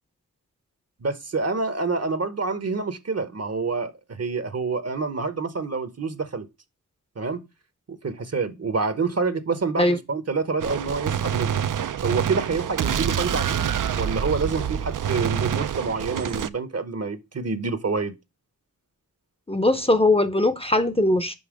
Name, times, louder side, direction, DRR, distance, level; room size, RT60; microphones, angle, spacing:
voice 1, 1.0-6.5 7.2-7.5 7.9-11.6 12.0-13.7 14.0-18.1, right 4 dB, 45° right, 0.9 m, -27 dB
Gunshot gunfire, 10.6-16.5, right 9 dB, 60° right, 0.5 m, -26 dB
voice 2, 19.5-21.3, left 2 dB, 15° left, 0.6 m, -20 dB
5.5 x 5.4 x 5.0 m
wide cardioid pair, 70°, 36 cm